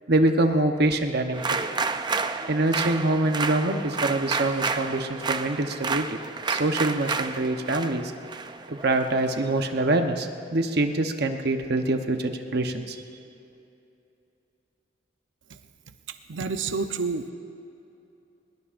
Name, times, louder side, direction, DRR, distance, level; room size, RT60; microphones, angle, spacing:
voice 1, 0.1-1.4 2.5-6.2 6.5-8.1 8.7-13.0, right 2 dB, 60° right, 5 dB, 0.9 m, -25 dB
sound 1, 1.3-9.7, right 4 dB, 25° right, 0.5 m, -30 dB
voice 2, 16.3-17.3, right 4 dB, 80° right, 8 dB, 0.7 m, -28 dB
22.5 x 21.0 x 2.6 m, 2.8 s
head